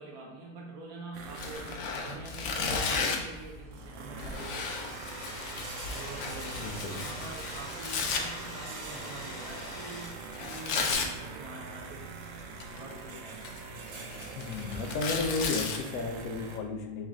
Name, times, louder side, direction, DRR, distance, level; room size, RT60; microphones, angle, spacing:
voice 1, 0.0-1.7 2.0-4.7 5.9-12.1 12.7-13.4, right 2 dB, 90° right, -1 dB, 1.3 m, -45 dB
sound 1, 1.1-16.6, right 4 dB, 70° right, 0.8 m, -44 dB
Tearing, 1.3-3.3 4.2-8.2 10.3-11.1 12.4-12.9 13.3-15.8, left 4 dB, 65° left, 0.8 m, -34 dB
Domestic sounds home sounds, 4.5-10.5, left 1 dB, 20° left, 1.0 m, -44 dB
voice 2, 6.6-6.9 14.3-17.1, left 3 dB, 90° left, 4 dB, 1.1 m, -33 dB
3.9 x 3.2 x 3.6 m, 1.1 s
omnidirectional pair, 1.5 m